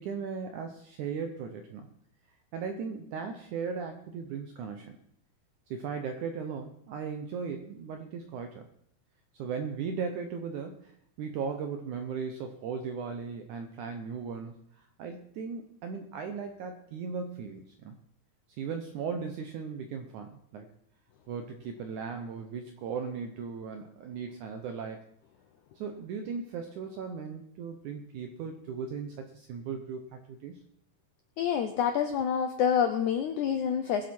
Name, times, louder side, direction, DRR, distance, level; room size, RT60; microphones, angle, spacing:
voice 1, 0.0-1.9 2.5-5.0 5.7-8.6 9.3-10.9 11.2-18.0 18.6-20.7 21.3-25.0 25.8-30.6, right 6 dB, 75° right, 6 dB, 1.8 m, -37 dB
voice 2, 31.4-34.1, left 8 dB, 80° left, 7 dB, 1.7 m, -27 dB
21.5 x 7.7 x 4.4 m, 0.68 s
omnidirectional pair, 4.5 m